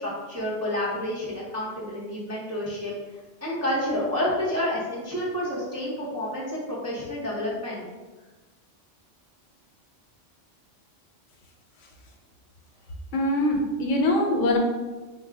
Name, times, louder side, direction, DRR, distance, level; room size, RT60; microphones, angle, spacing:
voice 1, 0.0-2.9 3.4-7.8, left 1 dB, 25° right, -6 dB, 0.3 m, -29 dB
voice 2, 13.1-14.6, left 1 dB, 85° left, 1 dB, 1.0 m, -23 dB
3.6 x 2.2 x 3.3 m, 1.2 s
omnidirectional pair, 1.2 m